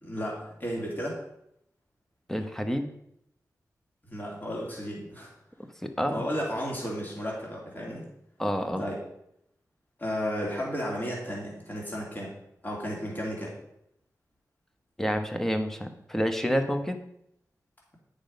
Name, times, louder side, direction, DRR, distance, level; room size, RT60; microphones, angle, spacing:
voice 1, 0.0-1.2 4.1-5.3 6.1-8.0 8.8-9.0 10.0-12.3 12.6-13.6, equal, 30° left, -3 dB, 2.5 m, -33 dB
voice 2, 2.3-2.9 5.8-6.3 8.4-8.8 15.0-17.0, equal, 5° left, 7 dB, 1.0 m, -28 dB
8.9 x 5.2 x 5.2 m, 0.77 s
wide cardioid pair, 80°, 6 cm